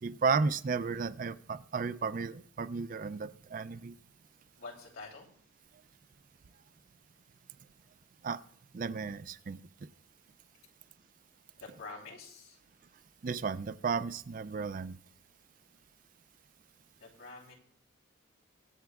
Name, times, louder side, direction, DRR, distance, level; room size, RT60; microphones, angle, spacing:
voice 1, 0.0-3.9 8.2-8.4 8.7-9.6 13.2-15.0, right 5 dB, 40° right, 14 dB, 0.4 m, -33 dB
voice 2, 4.6-5.3 11.5-12.6 16.9-17.5, left 3 dB, 90° left, -2 dB, 3.2 m, -47 dB
23.5 x 8.0 x 2.4 m, 0.63 s
head